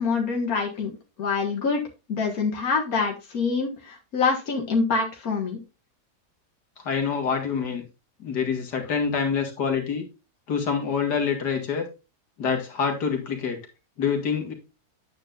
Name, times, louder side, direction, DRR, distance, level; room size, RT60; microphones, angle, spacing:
voice 1, 0.0-1.8 2.1-5.6, left 4 dB, 60° left, 1 dB, 2.2 m, -25 dB
voice 2, 6.9-7.8 8.2-10.0 10.5-11.8 12.4-13.6 14.0-14.5, left 6 dB, 90° left, 4 dB, 2.4 m, -26 dB
9.2 x 8.5 x 2.5 m, 0.28 s
omnidirectional pair, 1.7 m